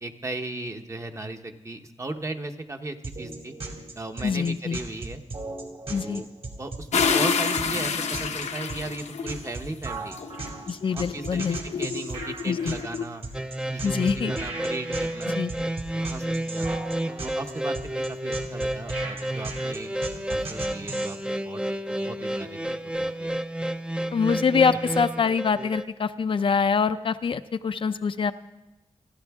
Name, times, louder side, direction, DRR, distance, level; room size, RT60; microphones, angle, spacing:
voice 1, 0.0-3.5 4.0-5.2 5.9-6.3 6.6-10.2 10.9-11.4 11.8-13.2 13.7-15.4 16.0-16.8 17.2-21.2 21.4-21.6 21.9-23.3, right 2 dB, 25° right, 6 dB, 1.0 m, -36 dB
sound 1, 3.0-21.2, right 3 dB, 60° right, 2.7 m, -37 dB
voice 2, 4.2-4.8 5.9-6.2 10.7-11.6 12.5-12.7 13.8-14.3 15.3-15.5 24.1-28.3, left 5 dB, 50° left, 10 dB, 0.5 m, -25 dB
sound 2, 6.9-9.5 10.2-13.0, left 6 dB, 90° left, 1.0 m, -28 dB
sound 3, 13.3-25.8, right 1 dB, 10° right, 0.5 m, -30 dB
28.5 x 10.5 x 3.6 m, 0.97 s
wide cardioid pair, 120°, 11 cm